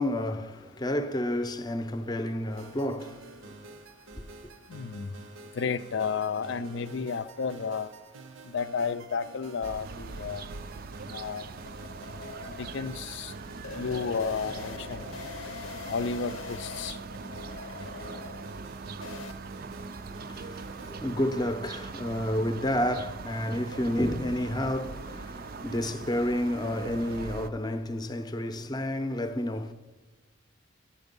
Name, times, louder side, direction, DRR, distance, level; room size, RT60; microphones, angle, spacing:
voice 1, 0.0-3.4 20.0-29.7, left 1 dB, 20° left, 0.6 m, -30 dB
sound 1, 2.5-20.9, right 3 dB, 80° right, 0.8 m, -49 dB
voice 2, 4.7-5.1 5.6-7.9 8.5-10.5 11.1-11.5 12.6-13.3 13.8-15.1 15.9-17.0, left 5 dB, 60° left, 0.4 m, -32 dB
sound 2, 9.6-27.5, right 4 dB, 45° right, 0.4 m, -41 dB
sound 3, 10.7-19.3, left 5 dB, 85° left, 0.8 m, -43 dB
12.0 x 10.5 x 5.3 m
head